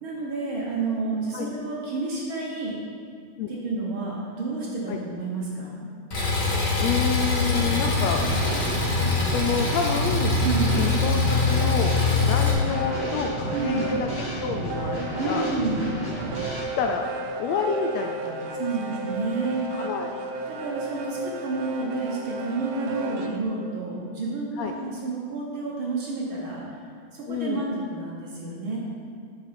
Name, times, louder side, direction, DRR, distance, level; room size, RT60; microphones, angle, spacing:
voice 1, 0.0-2.7 3.5-5.9 10.4-10.8 13.5-13.8 15.2-15.9 18.5-19.7 20.6-26.8 27.1-28.8, right 3 dB, 55° right, -4 dB, 1.7 m, -30 dB
Engine, 6.1-12.5, left 3 dB, 45° left, 2.7 m, -23 dB
voice 2, 6.8-8.2 9.2-10.4 10.8-12.0 12.2-15.5 16.8-17.1 17.4-18.6 18.9-19.0 19.7-20.1 24.6-24.7 27.3-27.6, left 6 dB, 80° left, 3 dB, 1.6 m, -29 dB
Drum kit / Snare drum, 7.6-16.6, equal, 10° left, 1.5 m, -32 dB
sound 1, 10.8-23.4, right 2 dB, 75° right, 1.9 m, -35 dB
9.8 x 7.1 x 5.1 m, 2.3 s
omnidirectional pair, 3.4 m